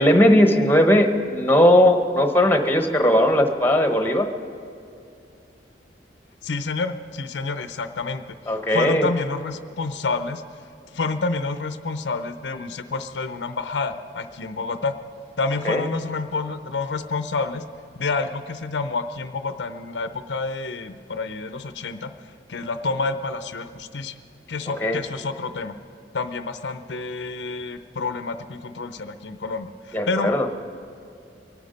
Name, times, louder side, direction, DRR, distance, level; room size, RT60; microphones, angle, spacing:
voice 1, 0.0-4.3 8.5-9.0 15.6-15.8 24.8-25.0 29.9-30.5, left 1 dB, 10° left, 5 dB, 1.0 m, -18 dB
voice 2, 6.4-10.4 10.9-14.9 15.4-17.6 18.0-24.1 24.5-25.7 26.1-30.5, left 3 dB, 70° left, 9 dB, 0.6 m, -29 dB
24.0 x 9.5 x 5.2 m, 2.5 s
head